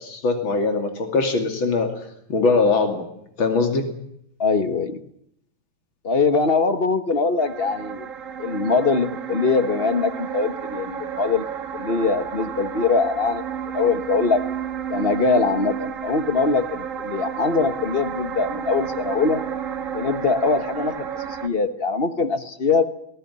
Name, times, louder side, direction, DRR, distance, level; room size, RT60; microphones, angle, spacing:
voice 1, 0.0-1.9 2.3-3.0 3.4-3.9, left 3 dB, 80° left, 5 dB, 3.4 m, -21 dB
voice 2, 4.4-5.0 6.0-8.1 8.4-11.4 11.7-13.4 13.7-14.4 14.9-19.4 19.9-22.9, left 4 dB, 35° left, 10 dB, 1.3 m, -22 dB
sound 1, 7.4-21.5, right 8 dB, 45° right, 1.7 m, -31 dB
20.0 x 17.0 x 9.7 m, 0.74 s
omnidirectional pair, 2.1 m